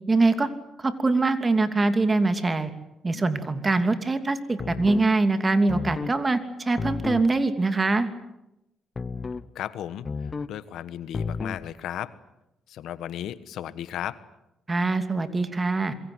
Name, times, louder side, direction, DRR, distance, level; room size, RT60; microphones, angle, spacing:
voice 1, 0.1-0.5 0.8-2.7 3.0-8.1 14.7-15.9, right 3 dB, 25° right, 9 dB, 2.8 m, -23 dB
sound 1, 4.6-5.1 5.7-6.2 6.8-7.3 9.0-9.5 10.1-10.6 11.1-11.7, left 4 dB, 35° left, 1.1 m, -32 dB
voice 2, 9.5-12.1 12.7-14.2, left 11 dB, 80° left, 15 dB, 1.3 m, -35 dB
27.0 x 23.0 x 8.0 m, 0.90 s
cardioid pair, 90°, 0 cm